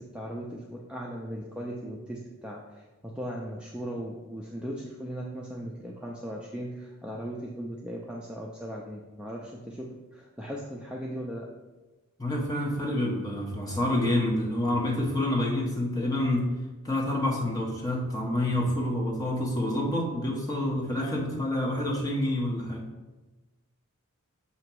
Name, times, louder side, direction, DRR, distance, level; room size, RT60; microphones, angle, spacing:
voice 1, 0.0-11.5, equal, 5° right, -2 dB, 0.4 m, -38 dB
voice 2, 12.2-16.5 16.8-22.8, left 1 dB, 15° left, -2 dB, 0.9 m, -28 dB
7.0 x 2.9 x 4.6 m, 1.2 s
head